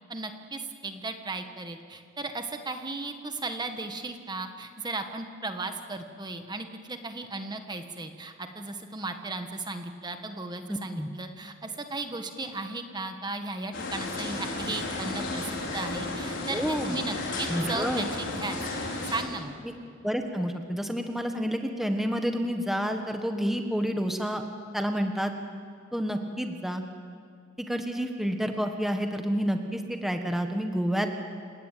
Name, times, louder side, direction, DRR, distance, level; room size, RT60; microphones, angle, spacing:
voice 1, 0.1-18.6 19.1-19.5, right 3 dB, 20° right, 6 dB, 1.4 m, -36 dB
voice 2, 10.7-11.1 16.5-17.0 17.5-18.0 19.6-19.7 20.0-24.4 24.7-25.3 25.9-26.8 27.6-31.1, equal, ahead, 4 dB, 1.4 m, -29 dB
sound 1, 13.7-19.2, left 2 dB, 60° left, 5.1 m, -33 dB
29.0 x 17.5 x 9.2 m, 2.3 s
head